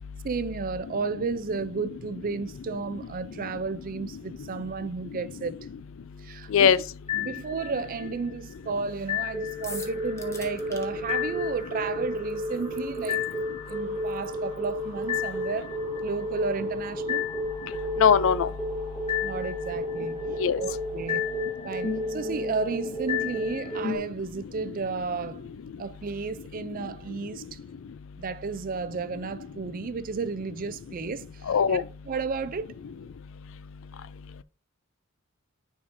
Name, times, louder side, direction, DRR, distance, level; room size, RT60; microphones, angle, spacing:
voice 1, 0.2-5.6 6.2-6.8 7.1-13.2 13.7-15.7 16.0-17.3 19.2-20.2 20.6-21.2 21.6-25.5 25.8-27.6 28.2-31.8 32.0-32.7, right 4 dB, 40° right, 0.4 m, -33 dB
sound 1, 7.1-8.0 9.1-24.0, left 3 dB, 30° left, 2.6 m, -31 dB
sound 2, 9.6-10.9, left 3 dB, 15° left, 0.8 m, -40 dB
voice 2, 18.0-18.5 20.4-20.6 31.5-31.8, left 7 dB, 65° left, 0.4 m, -20 dB
9.6 x 4.8 x 2.6 m
head